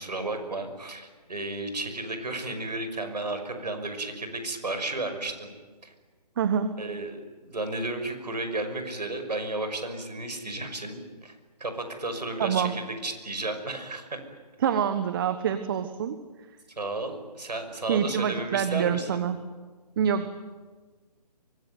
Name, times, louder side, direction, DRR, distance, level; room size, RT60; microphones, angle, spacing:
voice 1, 0.0-5.5 5.8-5.9 6.8-11.3 11.6-14.2 16.8-19.2, right 2 dB, 90° right, 7 dB, 5.8 m, -33 dB
voice 2, 6.4-6.8 12.4-12.8 14.6-16.2 17.9-19.4 20.0-20.3, right 8 dB, 35° right, 11 dB, 1.3 m, -26 dB
24.0 x 21.5 x 9.4 m, 1.4 s
hypercardioid pair, 155°, 21 cm